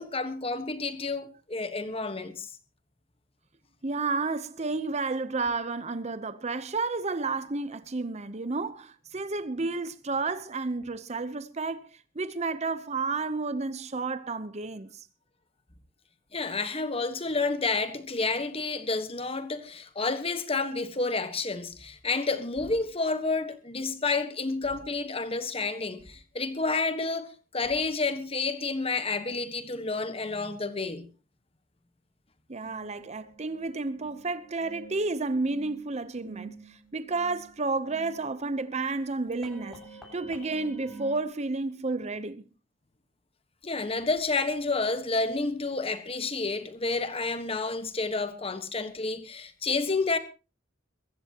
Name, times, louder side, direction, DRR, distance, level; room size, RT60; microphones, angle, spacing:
voice 1, 0.0-2.5 16.3-31.1 43.6-50.2, left 3 dB, 30° left, 1.3 m, -30 dB
voice 2, 3.8-15.1 32.5-39.8 40.1-42.4, right 3 dB, 35° right, 0.8 m, -31 dB
sound 1, 32.6-41.2, right 4 dB, ahead, 7.4 m, -49 dB
22.5 x 15.5 x 2.9 m
head